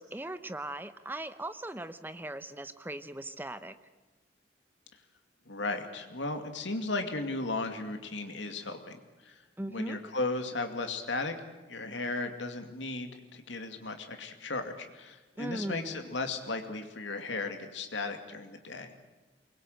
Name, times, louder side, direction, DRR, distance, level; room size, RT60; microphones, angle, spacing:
voice 1, 0.0-3.8 9.6-10.0 15.4-16.0, right 1 dB, 10° right, 12 dB, 0.8 m, -39 dB
voice 2, 5.5-9.3 9.7-11.3 11.7-18.9, left 3 dB, 80° left, 6 dB, 2.4 m, -35 dB
23.5 x 21.5 x 8.0 m, 1.2 s
head